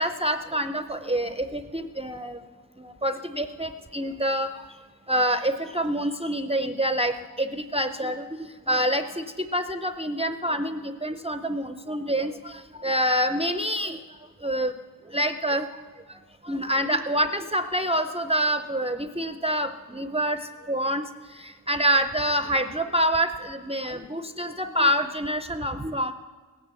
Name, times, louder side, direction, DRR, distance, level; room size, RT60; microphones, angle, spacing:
voice 1, 0.0-2.4 3.0-4.5 5.1-8.2 8.7-9.2 9.5-12.3 12.8-14.0 14.4-14.7 15.1-15.7 16.5-20.4 20.7-21.0 21.7-26.1, equal, 15° right, 8 dB, 0.6 m, -26 dB
17.5 x 9.4 x 6.9 m, 1.5 s
wide cardioid pair, 45°, 39 cm